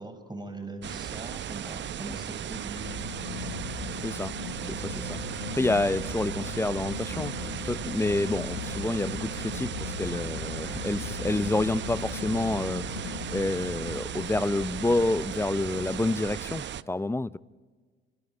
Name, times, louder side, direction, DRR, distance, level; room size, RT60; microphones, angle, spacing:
voice 1, 0.0-3.1, right 2 dB, 15° right, 5.0 m, -40 dB
sound 1, 0.8-16.8, right 10 dB, 35° right, 0.8 m, -36 dB
sound 2, 2.8-16.1, left 7 dB, 85° left, 1.5 m, -39 dB
voice 2, 4.0-4.3 4.7-17.4, left 2 dB, 10° left, 0.6 m, -29 dB
sound 3, 4.5-13.7, right 7 dB, 70° right, 1.5 m, -49 dB
29.5 x 25.5 x 4.5 m
figure-of-eight pair, 55°, 31 cm